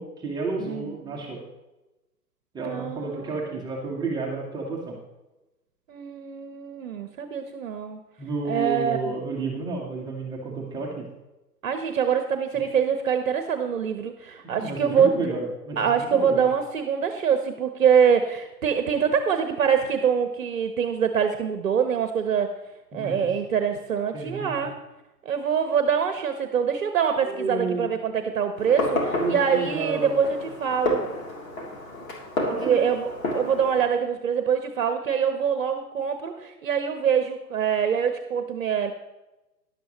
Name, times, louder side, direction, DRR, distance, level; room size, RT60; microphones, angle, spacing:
voice 1, 0.0-1.4 2.5-5.0 8.2-11.1 14.6-16.5 22.9-23.1 24.1-24.5 27.2-27.9 29.2-30.2 32.4-32.7, right 3 dB, 10° right, -3 dB, 1.3 m, -31 dB
voice 2, 0.6-1.0 2.6-3.6 5.9-8.0 8.5-9.1 11.6-15.1 15.8-22.5 22.9-24.8 25.2-31.0 32.6-38.9, right 7 dB, 55° right, 8 dB, 1.1 m, -24 dB
Fireworks, 28.6-33.8, left 1 dB, 55° left, 3.2 m, -30 dB
13.0 x 11.0 x 3.1 m, 1.0 s
figure-of-eight pair, 125°, 49 cm